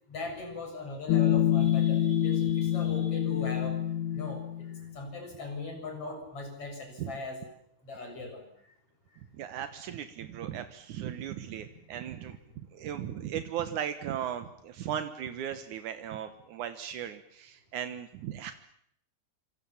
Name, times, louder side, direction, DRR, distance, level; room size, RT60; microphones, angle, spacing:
voice 1, 0.1-3.8 4.1-7.4 7.8-8.5, left 3 dB, 50° left, 4 dB, 8.1 m, -40 dB
sound 1, 1.1-4.9, left 11 dB, 80° left, 2.7 m, -27 dB
voice 2, 9.4-12.4 12.7-18.5, right 10 dB, 80° right, 9 dB, 2.7 m, -37 dB
28.0 x 26.5 x 7.3 m, 0.70 s
omnidirectional pair, 3.5 m